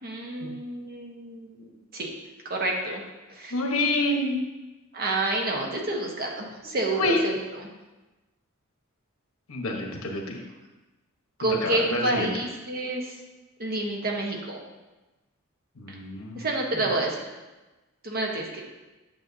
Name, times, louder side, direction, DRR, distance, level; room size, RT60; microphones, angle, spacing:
voice 1, 0.0-2.1 2.5-3.0 3.3-3.5 4.9-7.7 11.4-13.1 13.6-14.6 16.3-17.1 18.0-18.6, right 2 dB, 45° right, 0 dB, 1.2 m, -29 dB
voice 2, 3.5-4.4 6.6-7.3 9.5-10.4 11.4-12.4 15.8-16.5 16.7-16.9, left 2 dB, 80° left, 2 dB, 1.2 m, -28 dB
9.0 x 6.7 x 2.8 m, 1.1 s
head